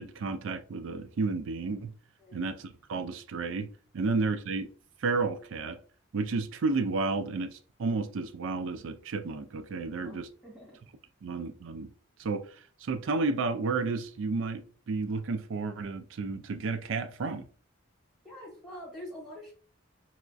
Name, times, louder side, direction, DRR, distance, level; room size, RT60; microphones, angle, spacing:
voice 1, 0.0-1.9 2.3-4.7 5.0-5.8 6.1-10.3 11.2-11.9 12.2-12.5 12.8-17.4, right 3 dB, 65° right, 0.4 m, -32 dB
voice 2, 10.0-10.8 18.2-19.5, equal, 10° right, 1.5 m, -46 dB
4.1 x 2.3 x 2.5 m
head